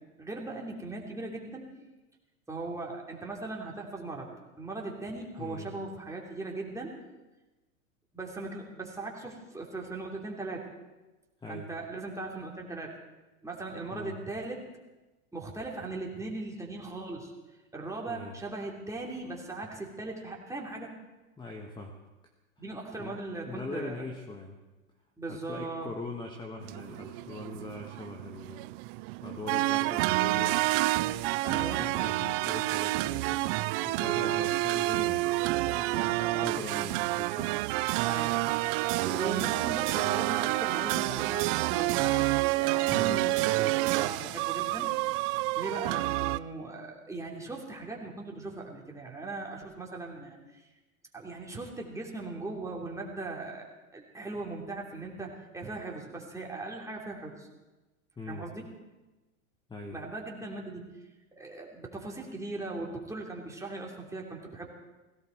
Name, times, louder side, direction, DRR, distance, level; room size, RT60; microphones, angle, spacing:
voice 1, 0.2-1.7 2.5-4.3 4.6-6.9 8.1-10.7 11.5-12.9 13.4-14.6 15.3-17.3 17.7-20.9 22.6-24.0 25.2-25.9 31.4-31.8 34.2-34.5 36.0-36.8 38.0-38.4 39.0-42.2 42.6-44.9 45.5-50.6 51.1-53.6 53.9-57.5 58.3-58.7 59.9-60.9 61.4-64.7, right 2 dB, 5° right, -1 dB, 3.1 m, -39 dB
voice 2, 18.1-18.4 21.4-21.9 23.0-23.2 23.4-24.6 25.3-28.6 29.2-30.6 31.5-33.4 33.8-36.1 36.4-37.6 42.9-43.2 58.2-58.5 59.7-60.0, left 2 dB, 10° left, 2 dB, 1.5 m, -41 dB
sound 1, 26.6-46.4, right 20 dB, 40° right, 0.4 m, -29 dB
17.5 x 16.5 x 4.6 m, 1.1 s
hypercardioid pair, 115°, 42 cm